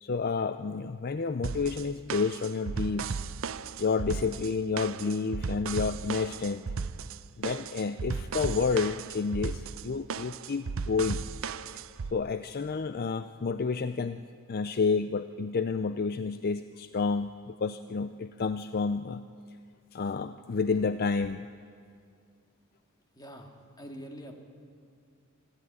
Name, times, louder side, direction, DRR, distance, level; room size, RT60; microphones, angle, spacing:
voice 1, 0.0-3.2 3.8-6.7 7.4-11.2 12.1-14.2 14.5-19.2 19.9-21.5, left 4 dB, 45° left, 11 dB, 0.5 m, -30 dB
sound 1, 1.4-12.1, right 5 dB, 65° right, 0.6 m, -36 dB
voice 2, 23.1-24.4, equal, 20° left, 2 dB, 2.4 m, -45 dB
26.0 x 13.0 x 9.6 m, 2.2 s
head